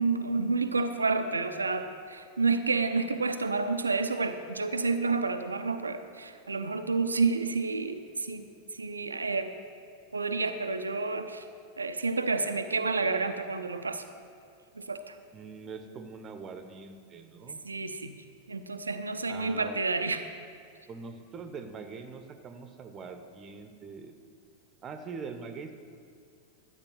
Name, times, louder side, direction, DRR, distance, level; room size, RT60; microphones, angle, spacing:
voice 1, 0.0-8.5 8.7-9.5 10.1-11.4 11.8-14.0 14.8-15.1 17.6-18.2 18.5-20.2, right 4 dB, 75° right, 8 dB, 0.6 m, -29 dB
voice 2, 15.3-17.6 19.3-19.8 20.9-24.1 24.8-25.7, right 5 dB, 25° right, 8 dB, 1.0 m, -43 dB
12.0 x 8.4 x 6.1 m, 2.4 s
figure-of-eight pair, 90°, 0 cm